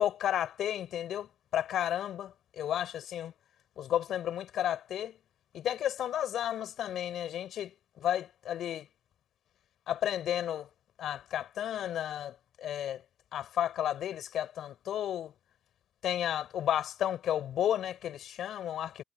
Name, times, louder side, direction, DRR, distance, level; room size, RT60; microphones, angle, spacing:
voice 1, 0.0-3.3 3.8-5.1 5.5-7.7 8.0-8.9 9.9-10.7 11.0-13.0 13.3-15.3 16.0-19.0, left 11 dB, 75° left, 6.9 m, -32 dB
cardioid pair, 90°, 0 cm